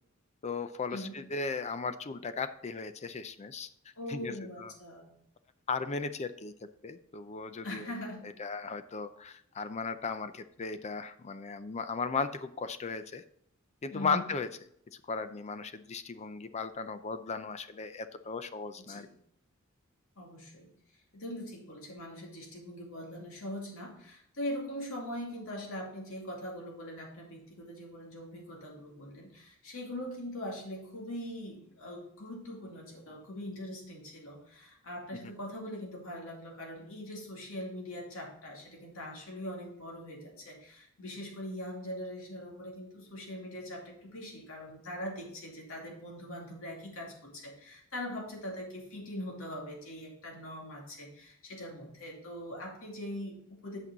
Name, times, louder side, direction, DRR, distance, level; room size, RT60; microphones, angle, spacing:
voice 1, 0.4-3.7 4.1-4.3 4.6-4.7 5.7-6.5 6.8-7.9 8.4-13.2 13.8-14.5 15.1-19.1, left 4 dB, 30° left, 11 dB, 0.4 m, -36 dB
voice 2, 4.0-5.1 7.6-8.2 13.9-14.2 18.8-19.0 20.2-20.7 21.1-53.8, left 1 dB, 70° left, -1 dB, 2.6 m, -42 dB
8.4 x 6.1 x 3.9 m, 0.70 s
head